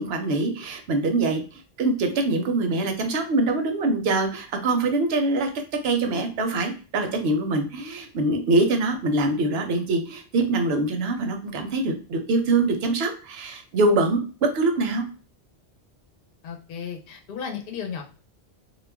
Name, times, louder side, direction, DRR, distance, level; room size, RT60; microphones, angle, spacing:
voice 1, 0.0-5.5 5.8-15.1, right 2 dB, 75° right, 5 dB, 0.8 m, -24 dB
voice 2, 16.4-18.0, left 7 dB, 65° left, 2 dB, 0.8 m, -34 dB
2.3 x 2.1 x 3.3 m, 0.37 s
omnidirectional pair, 1.1 m